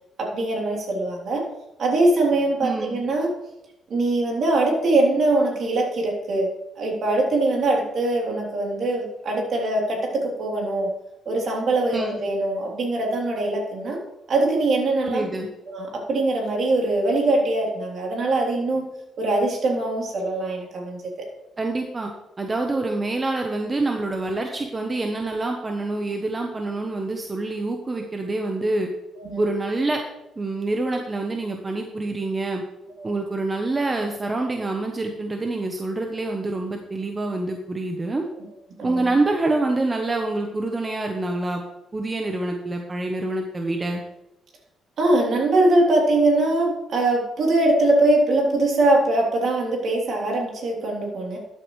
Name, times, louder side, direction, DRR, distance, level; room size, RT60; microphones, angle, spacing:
voice 1, 0.2-1.4 1.8-3.3 3.9-6.5 6.8-10.9 11.2-14.0 14.3-15.3 15.7-18.9 19.2-21.3 29.2-29.4 33.0-33.1 38.8-39.1 45.0-51.4, right 2 dB, 60° right, -1 dB, 3.3 m, -22 dB
voice 2, 2.6-3.0 11.9-12.2 15.0-15.5 21.6-22.1 22.4-28.9 29.4-30.0 30.4-32.6 33.0-38.2 38.8-41.6 41.9-44.0, right 2 dB, 25° right, 3 dB, 1.0 m, -26 dB
12.5 x 7.9 x 3.2 m, 0.92 s
cardioid pair, 90°, 0 cm